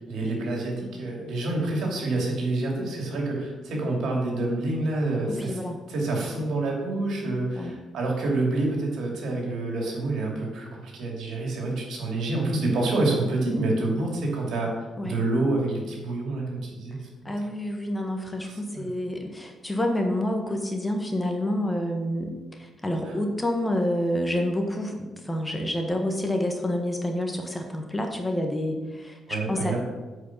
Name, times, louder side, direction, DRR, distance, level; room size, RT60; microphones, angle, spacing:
voice 1, 0.1-5.6 5.9-14.7 15.0-17.3 18.4-18.9 23.0-23.1 29.3-29.8, right 2 dB, 75° right, -1 dB, 2.5 m, -27 dB
voice 2, 5.3-5.8 7.6-7.7 15.0-15.2 17.2-29.8, left 1 dB, 15° left, 3 dB, 1.2 m, -28 dB
8.2 x 5.0 x 6.0 m, 1.2 s
cardioid pair, 90°, 0 cm